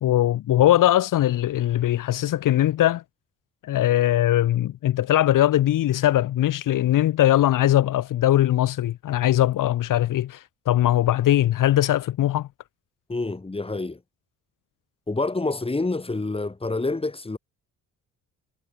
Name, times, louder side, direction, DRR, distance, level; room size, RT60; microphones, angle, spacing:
voice 1, 0.0-3.0 3.6-12.5, left 13 dB, 80° left, 1.3 m, -20 dB
voice 2, 13.1-14.0 15.1-17.4, left 3 dB, 15° left, 5.8 m, -27 dB
cardioid pair, 115°, 32 cm